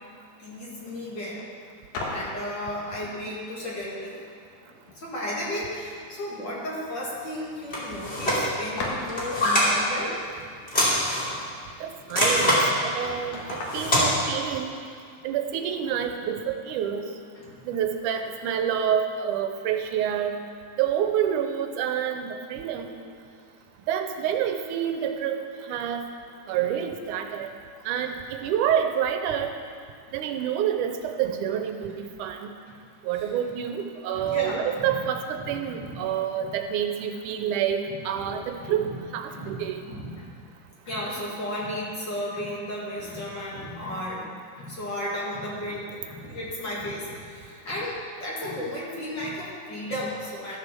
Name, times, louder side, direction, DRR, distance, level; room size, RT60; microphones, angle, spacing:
voice 1, 0.4-1.5 2.0-4.2 4.6-10.2 17.3-17.5 25.7-25.8 26.5-26.6 33.1-33.4 34.1-35.0 35.4-36.0 36.4-36.5 37.9-38.3 38.6-39.0 39.3-40.3 40.9-50.6, left 1 dB, 40° left, -5 dB, 2.3 m, -34 dB
sound 1, 1.9-2.4 4.4-4.5 4.8-5.4 5.7-6.5 6.8-6.9 7.4-7.5 8.8-9.3 12.3-12.4 12.8-14.4, left 2 dB, 70° left, 2.9 m, -36 dB
sound 2, 7.7-8.4 9.0-9.7 10.7-11.4 12.1-12.6 13.5-14.1, left 1 dB, 20° left, 2.5 m, -23 dB
voice 2, 11.8-12.6 12.8-14.7 15.2-17.0 17.7-20.3 20.8-23.0 23.9-25.4 25.7-26.0 26.5-27.5 27.9-29.5 30.1-32.5 33.0-38.8 39.1-39.9, right 9 dB, 90° right, 6 dB, 2.3 m, -28 dB
13.0 x 7.0 x 6.8 m, 2.1 s
omnidirectional pair, 3.6 m